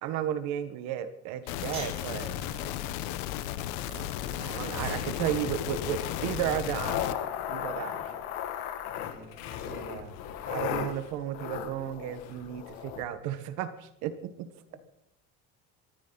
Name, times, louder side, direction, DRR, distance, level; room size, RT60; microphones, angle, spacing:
voice 1, 0.0-3.0 4.2-8.2 9.7-10.1 10.4-14.8, right 10 dB, 70° right, 10 dB, 1.5 m, -34 dB
sound 1, 1.5-7.1, left 13 dB, 80° left, 1.2 m, -35 dB
sound 2, 1.6-8.0, right 1 dB, 20° right, 7.3 m, -47 dB
voice 2, 4.1-4.5 9.1-10.0, left 3 dB, 30° left, -1 dB, 5.1 m, -48 dB
sound 3, 4.6-13.0, left 9 dB, 65° left, 2.2 m, -37 dB
23.5 x 14.0 x 4.1 m, 0.82 s
cardioid pair, 165°, 30 cm